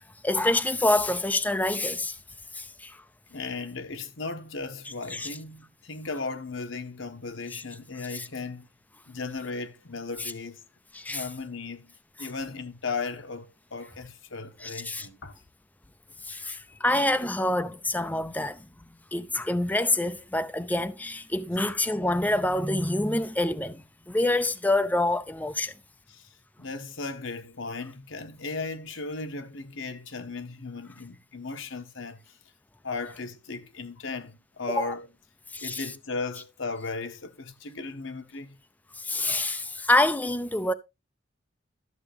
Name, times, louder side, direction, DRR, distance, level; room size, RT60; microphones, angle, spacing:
voice 1, 0.2-2.2 2.5-3.0 5.1-5.3 7.5-7.6 8.1-8.3 10.2-10.3 10.9-11.3 12.2-12.3 14.6-15.1 16.2-18.6 19.1-25.7 34.7-34.9 35.5-35.9 39.0-40.7, left 1 dB, 10° left, 0.5 m, -27 dB
voice 2, 3.3-8.7 9.1-10.6 11.1-11.9 12.2-15.3 16.4-16.5 26.1-26.3 26.6-32.3 32.8-35.1 35.6-38.6, left 4 dB, 85° left, 1.3 m, -36 dB
12.5 x 7.0 x 3.4 m
head